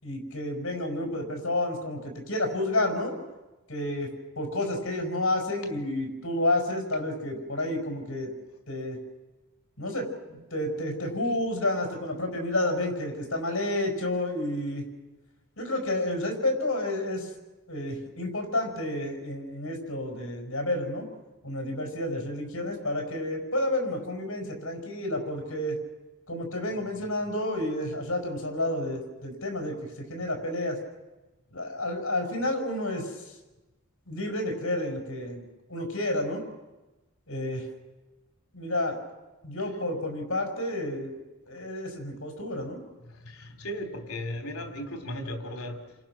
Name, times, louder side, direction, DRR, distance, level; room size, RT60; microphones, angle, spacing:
voice 1, 0.0-3.2 3.7-8.3 8.7-9.0 9.8-14.8 15.6-17.3 17.7-21.1 21.4-25.8 26.3-30.8 31.5-33.1 34.1-35.4 35.7-36.4 37.3-37.7 38.5-39.0 39.4-41.2 41.5-42.8, left 1 dB, 70° left, 2 dB, 5.9 m, -30 dB
voice 2, 43.0-46.0, left 1 dB, 85° left, 6 dB, 3.4 m, -36 dB
30.0 x 26.0 x 6.2 m, 1.1 s
head